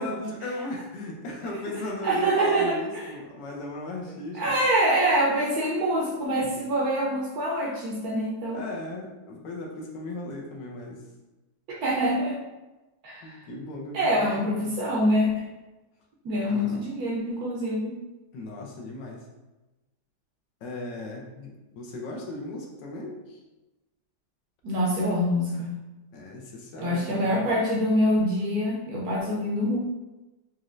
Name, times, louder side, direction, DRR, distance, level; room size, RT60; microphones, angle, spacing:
voice 1, 0.0-4.5 6.4-6.5 8.5-11.0 13.2-14.7 16.3-16.9 18.3-19.3 20.6-23.4 26.1-27.5, left 2 dB, 75° left, -1 dB, 1.3 m, -37 dB
voice 2, 2.0-3.0 4.3-8.6 11.7-12.4 13.0-13.4 13.9-15.5 16.2-18.0 24.6-25.8 26.8-29.8, equal, 65° right, -3 dB, 1.0 m, -25 dB
4.2 x 3.0 x 2.5 m, 1.1 s
omnidirectional pair, 2.0 m